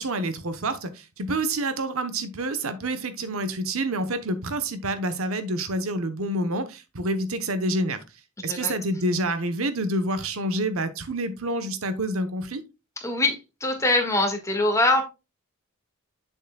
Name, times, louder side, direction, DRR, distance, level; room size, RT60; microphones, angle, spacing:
voice 1, 0.0-8.0 8.4-12.6, right 1 dB, 75° right, 1.0 m, -28 dB
voice 2, 13.0-15.0, left 2 dB, 15° left, 1.7 m, -23 dB
8.4 x 6.9 x 2.3 m
head